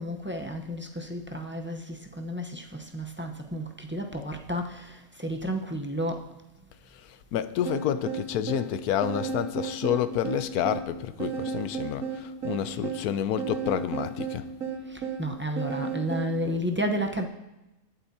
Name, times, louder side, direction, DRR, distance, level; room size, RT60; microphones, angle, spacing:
voice 1, 0.0-6.2 14.9-17.3, equal, 10° right, 0.5 m, -32 dB
voice 2, 6.9-14.5, left 10 dB, 80° left, 1.1 m, -29 dB
sound 1, 7.7-16.4, right 6 dB, 60° right, 2.0 m, -34 dB
21.0 x 8.0 x 2.8 m
omnidirectional pair, 1.6 m